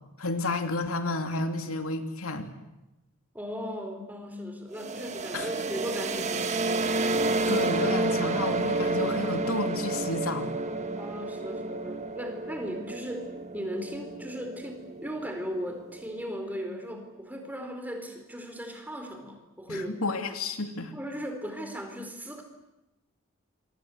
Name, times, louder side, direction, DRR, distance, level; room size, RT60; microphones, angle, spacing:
voice 1, 0.2-2.5 5.3-5.5 7.5-10.5 19.7-20.9, left 2 dB, 80° left, 6 dB, 2.7 m, -31 dB
voice 2, 3.3-6.5 11.0-20.1 20.9-22.4, equal, 10° right, 5 dB, 4.4 m, -37 dB
sound 1, 4.7-16.4, right 2 dB, 30° right, 1.5 m, -30 dB
27.0 x 25.0 x 8.1 m, 0.98 s
head